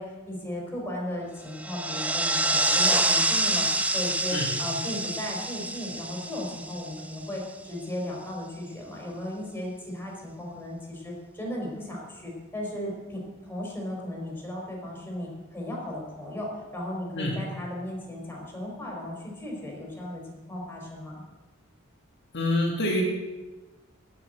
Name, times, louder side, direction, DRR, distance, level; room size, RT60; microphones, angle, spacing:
voice 1, 0.0-3.7 3.9-21.2, left 1 dB, 10° left, -2 dB, 4.0 m, -36 dB
sound 1, 1.5-7.4, right 2 dB, 5° right, 0.6 m, -27 dB
voice 2, 22.3-23.0, left 1 dB, 55° left, -1 dB, 1.9 m, -26 dB
9.6 x 8.2 x 9.1 m, 1.2 s
head